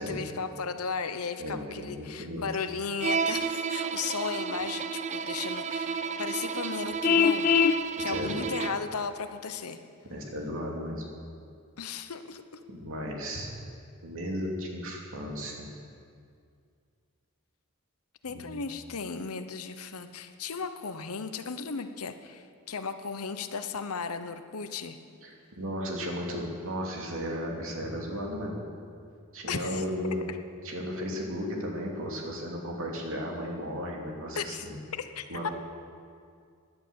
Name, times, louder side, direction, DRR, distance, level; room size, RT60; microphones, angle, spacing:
voice 1, 0.0-7.5 8.0-9.8 11.8-12.4 18.2-25.0 29.5-29.8 30.3-30.4 34.3-34.7 34.9-35.5, left 5 dB, 75° left, 9 dB, 0.9 m, -35 dB
voice 2, 1.4-2.4 8.0-8.5 10.1-11.0 12.7-13.5 14.0-15.7 18.3-18.6 25.2-28.6 29.3-30.2 30.6-34.8 35.3-35.5, equal, 65° right, 0 dB, 2.8 m, -35 dB
Bowed string instrument, 3.0-8.9, right 6 dB, 30° right, 0.5 m, -32 dB
Vehicle horn car horn honking, 7.0-7.8, left 6 dB, 40° left, 0.4 m, -22 dB
17.0 x 11.0 x 7.0 m, 2.3 s
head